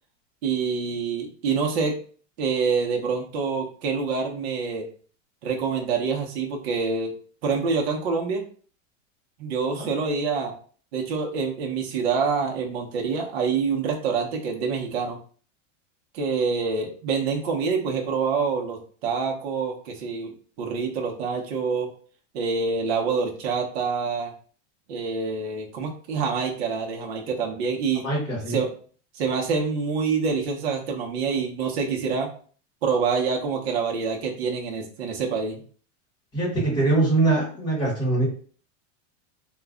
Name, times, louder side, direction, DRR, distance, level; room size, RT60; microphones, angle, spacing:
voice 1, 0.4-2.0 2.4-4.9 5.4-7.1 7.4-8.4 9.4-10.5 10.9-15.2 16.1-21.9 22.3-24.3 24.9-28.1 28.5-28.7 29.1-32.3 32.8-35.6, right 5 dB, 60° right, 1 dB, 0.7 m, -26 dB
voice 2, 28.0-28.6 36.3-38.2, right 2 dB, 10° left, -5 dB, 0.8 m, -23 dB
2.3 x 2.1 x 3.5 m, 0.43 s
supercardioid pair, 175°, 37 cm